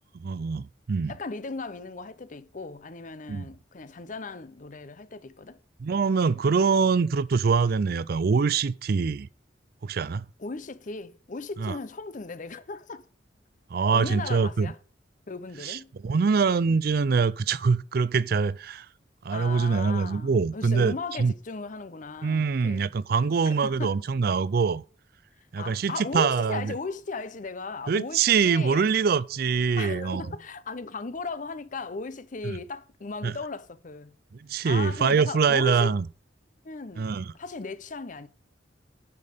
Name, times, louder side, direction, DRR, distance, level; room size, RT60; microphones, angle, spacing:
voice 1, 0.1-1.1 3.3-3.5 5.8-9.3 9.8-10.3 11.6-11.8 13.7-14.7 15.6-18.9 19.2-21.3 22.2-24.8 25.5-26.7 27.9-30.2 32.4-32.6 33.2-33.3 34.4-36.1 37.0-37.3, right 5 dB, 55° right, 0.4 m, -24 dB
voice 2, 1.1-5.6 10.4-13.0 13.9-14.8 15.3-15.9 19.3-22.9 23.4-24.0 25.6-28.8 29.8-34.1 34.6-35.9 36.6-37.1 37.3-38.3, left 3 dB, 45° left, 0.7 m, -37 dB
9.6 x 5.4 x 6.6 m
head